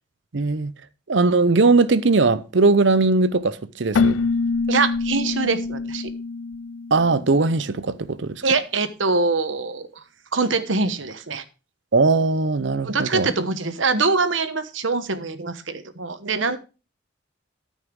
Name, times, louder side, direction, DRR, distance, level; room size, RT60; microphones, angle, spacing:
voice 1, 0.3-0.7 1.1-4.2 6.9-8.4 11.9-13.3, right 3 dB, 65° right, 0.7 m, -19 dB
Keyboard (musical), 3.9-7.6, left 4 dB, 85° left, 0.4 m, -25 dB
voice 2, 4.7-6.1 8.4-9.9 10.3-11.4 12.8-16.6, right 4 dB, 80° right, 1.2 m, -23 dB
13.0 x 5.6 x 4.7 m
head